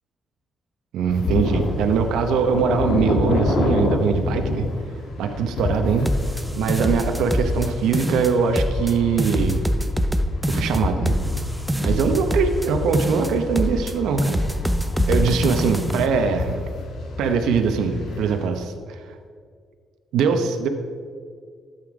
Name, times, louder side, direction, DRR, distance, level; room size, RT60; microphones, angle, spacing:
voice 1, 0.9-4.6 5.2-6.1 6.6-9.7 10.5-11.1 11.8-14.4 15.1-16.7 17.2-19.0 20.1-20.7, right 5 dB, 85° right, 6 dB, 0.9 m, -22 dB
sound 1, 1.1-18.5, left 3 dB, 75° left, 1.6 m, -28 dB
sound 2, 6.0-7.7 7.9-8.9 9.2-12.7 12.9-13.9 14.2-16.1, equal, 5° right, 0.6 m, -24 dB
13.0 x 8.2 x 4.9 m, 2.1 s
cardioid pair, 90°, 0 cm